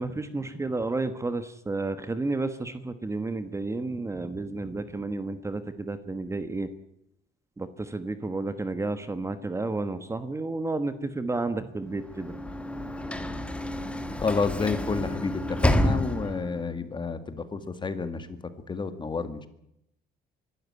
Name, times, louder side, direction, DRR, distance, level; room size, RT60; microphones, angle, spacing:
voice 1, 0.0-6.7 7.6-12.4, right 3 dB, 15° right, 11 dB, 1.3 m, -31 dB
Sliding door / Slam, 11.9-16.7, equal, 5° left, 1.7 m, -29 dB
voice 2, 14.2-18.4 18.7-19.5, left 4 dB, 25° left, 10 dB, 2.1 m, -30 dB
23.5 x 12.5 x 9.5 m, 0.78 s
cardioid pair, 110°, 17 cm